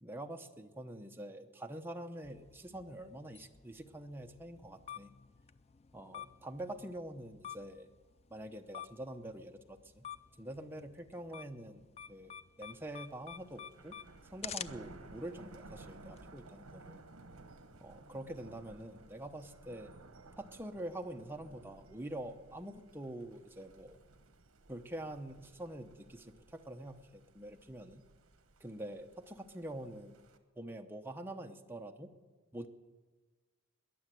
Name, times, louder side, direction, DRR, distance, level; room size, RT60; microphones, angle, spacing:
voice 1, 0.0-5.1 5.9-7.9 8.3-10.1 10.4-14.0 14.3-17.0 17.8-19.9 20.4-24.0 24.7-28.0 28.6-30.2 30.6-32.1 32.5-32.7, right 1 dB, 10° right, 4 dB, 0.8 m, -45 dB
sound 1, 2.2-16.2, left 8 dB, 30° left, 0.4 m, -51 dB
Thunder, 12.6-30.4, right 2 dB, 70° right, 1.3 m, -57 dB
21.5 x 7.2 x 9.2 m, 1.3 s
head